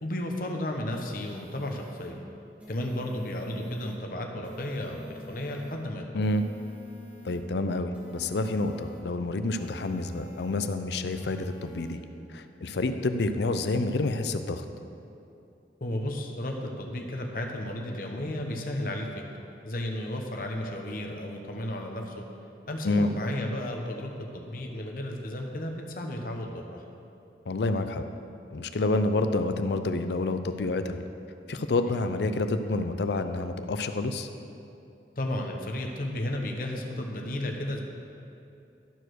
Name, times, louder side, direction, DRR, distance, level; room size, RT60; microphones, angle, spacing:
voice 1, 0.0-2.2 2.7-6.2 15.8-19.2 19.6-22.2 22.7-26.8 35.2-37.8, left 1 dB, 50° left, 2 dB, 0.9 m, -33 dB
sound 1, 0.9-2.1 2.6-3.9 4.4-5.7 6.2-7.4 7.9-9.0 9.5-10.6 11.1-11.9, left 2 dB, 10° right, 1.4 m, -48 dB
voice 2, 6.1-6.4 7.2-12.0 12.3-14.6 22.8-23.1 27.5-28.0 28.5-31.0 31.5-34.3, left 2 dB, 70° left, 9 dB, 0.5 m, -28 dB
12.0 x 4.6 x 6.2 m, 2.7 s
head